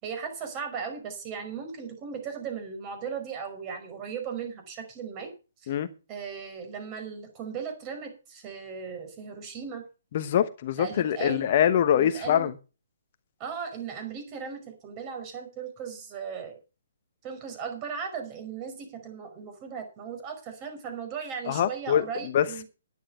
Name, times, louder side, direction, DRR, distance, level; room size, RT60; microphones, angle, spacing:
voice 1, 0.0-5.3 5.6-5.8 6.1-9.8 10.8-11.5 11.9-12.5 13.4-16.5 17.2-22.6, right 6 dB, 25° right, 5.3 m, -37 dB
voice 2, 10.1-12.5 21.5-22.1 22.3-22.6, left 9 dB, 45° left, 1.0 m, -24 dB
11.0 x 10.0 x 5.6 m
hypercardioid pair, 150°, 0 cm